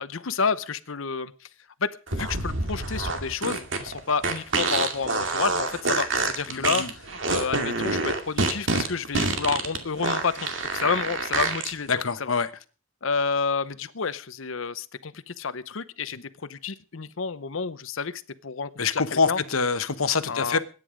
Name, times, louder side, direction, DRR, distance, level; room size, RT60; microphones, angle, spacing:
voice 1, 0.0-1.3 1.8-6.1 6.3-11.9 12.2-12.3 13.0-16.2 16.5-19.4 20.3-20.6, left 5 dB, 70° left, 0.8 m, -29 dB
sound 1, 2.1-11.7, right 3 dB, 65° right, 2.3 m, -27 dB
voice 2, 6.5-6.9 11.9-12.5 18.8-20.6, left 5 dB, 85° left, 1.2 m, -25 dB
21.5 x 9.9 x 5.1 m
head